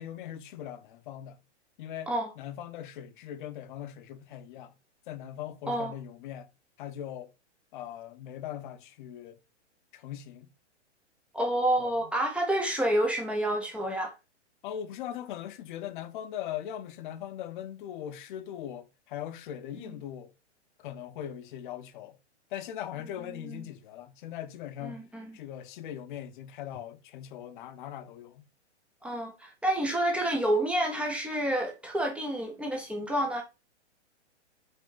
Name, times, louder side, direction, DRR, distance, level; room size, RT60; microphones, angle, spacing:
voice 1, 0.0-1.4 1.8-4.7 5.1-6.5 6.8-7.3 7.7-9.4 9.9-10.5 11.8-12.1 14.6-20.3 20.8-22.2 22.5-25.0 25.3-28.4, left 10 dB, 45° left, 0.6 m, -40 dB
voice 2, 11.3-14.1 19.8-20.0 23.3-23.7 24.8-25.4 29.0-33.4, right 1 dB, 5° right, 0.4 m, -29 dB
5.2 x 2.6 x 3.8 m
hypercardioid pair, 130°, 35 cm